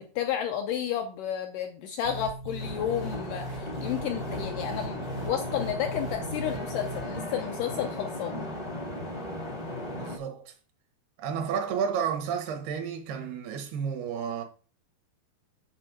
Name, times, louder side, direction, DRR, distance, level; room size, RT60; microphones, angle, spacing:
voice 1, 0.0-8.3, left 9 dB, 80° left, 2.0 m, -32 dB
sound 1, 2.0-7.2, right 1 dB, 65° right, 0.9 m, -38 dB
sound 2, 2.6-10.2, left 1 dB, 50° left, 0.4 m, -36 dB
voice 2, 9.9-10.5 11.2-14.4, right 7 dB, 80° right, 3.2 m, -31 dB
7.6 x 4.3 x 6.5 m
omnidirectional pair, 4.5 m